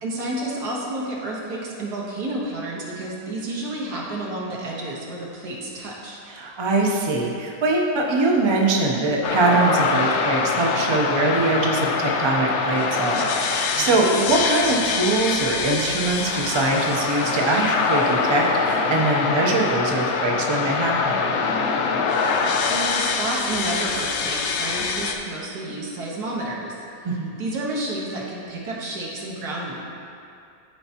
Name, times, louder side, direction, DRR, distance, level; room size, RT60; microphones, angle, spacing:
voice 1, 0.0-6.2 13.7-14.1 22.5-26.7 27.4-29.8, right 1 dB, 75° right, -4 dB, 1.8 m, -30 dB
voice 2, 6.3-21.2 27.0-27.5, right 2 dB, 40° right, -1 dB, 0.3 m, -22 dB
sound 1, 9.2-25.1, left 4 dB, 75° left, 0.6 m, -24 dB
13.0 x 4.5 x 2.9 m, 2.5 s
omnidirectional pair, 1.7 m